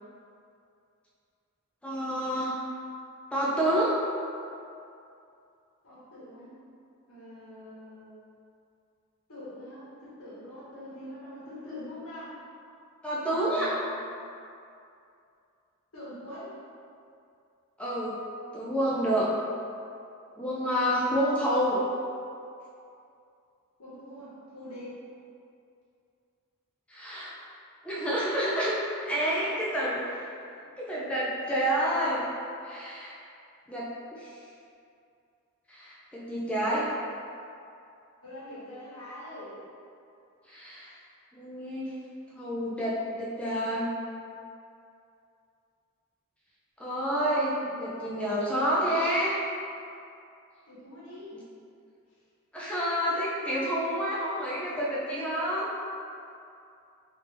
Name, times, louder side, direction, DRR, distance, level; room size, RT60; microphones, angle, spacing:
voice 1, 1.8-2.5 3.3-4.0 13.0-13.7 17.8-18.2 18.5-19.3 20.4-21.8 26.9-27.3 27.8-28.8 29.0-30.0 30.8-32.3 32.6-33.1 33.7-33.9 34.2-34.3 35.7-36.9 40.4-40.9 41.3-41.9 42.3-43.9 46.8-49.4 51.3-51.4 52.5-55.7, equal, 5° left, -7 dB, 0.4 m, -28 dB
voice 2, 5.8-6.6 7.1-8.1 9.3-12.4 13.2-14.0 15.9-16.6 23.8-25.0 29.3-29.6 30.0-30.7 38.2-39.6 47.2-47.7 50.7-51.4 52.1-52.2, left 1 dB, 85° left, -9 dB, 1.3 m, -44 dB
3.3 x 2.8 x 3.3 m, 2.5 s
head